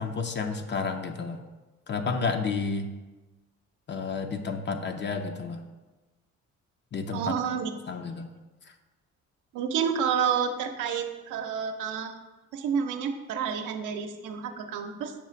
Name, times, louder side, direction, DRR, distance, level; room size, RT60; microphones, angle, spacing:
voice 1, 0.0-1.5 1.9-2.9 3.9-5.6 6.9-7.4 7.9-8.3, left 4 dB, 35° left, 7 dB, 0.6 m, -31 dB
voice 2, 7.1-7.7 9.5-12.1 12.5-15.1, right 7 dB, 85° right, 5 dB, 0.7 m, -29 dB
7.2 x 2.4 x 5.7 m, 1.2 s
cardioid pair, 90°, 30 cm